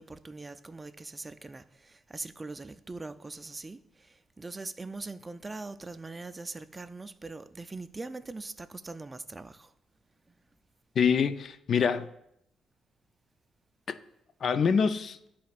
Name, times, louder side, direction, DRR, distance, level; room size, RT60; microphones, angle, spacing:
voice 1, 0.0-9.7 10.3-10.4, right 3 dB, 20° right, 0.3 m, -42 dB
voice 2, 11.0-12.1 13.9-14.0 14.4-15.2, left 6 dB, 55° left, 0.4 m, -25 dB
11.0 x 4.3 x 2.4 m
cardioid pair, 90°, 0 cm